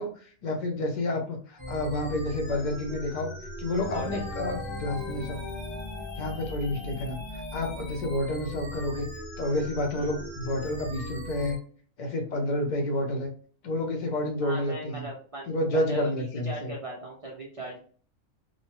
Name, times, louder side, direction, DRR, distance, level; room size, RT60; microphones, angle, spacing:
voice 1, 0.0-3.3 3.6-5.4 6.1-9.1 9.4-11.6 12.0-13.3 13.6-15.1 15.5-16.7, left 1 dB, 50° left, 3 dB, 0.6 m, -30 dB
sound 1, 1.6-11.6, equal, 10° left, 0.8 m, -39 dB
sound 2, 3.8-7.8, left 5 dB, 75° left, 1.0 m, -41 dB
voice 2, 3.9-4.3 9.9-10.1 14.4-17.8, right 2 dB, 55° right, -2 dB, 0.3 m, -38 dB
2.7 x 2.1 x 3.0 m, 0.44 s
omnidirectional pair, 1.4 m